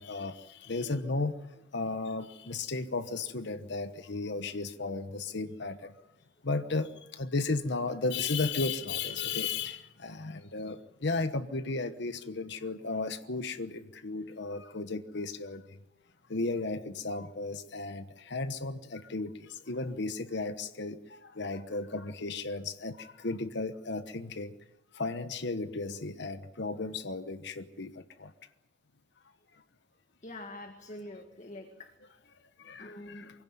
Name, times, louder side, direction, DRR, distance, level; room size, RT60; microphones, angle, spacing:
voice 1, 0.0-1.3 1.7-5.9 6.4-6.9 7.2-15.6 16.3-21.0 21.4-24.5 25.0-27.9 28.2-28.3 32.6-33.2, left 3 dB, 65° left, 10 dB, 1.1 m, -34 dB
voice 2, 30.2-31.9 32.8-33.3, left 1 dB, 40° left, 5 dB, 1.9 m, -45 dB
24.5 x 16.5 x 9.6 m, 1.0 s
head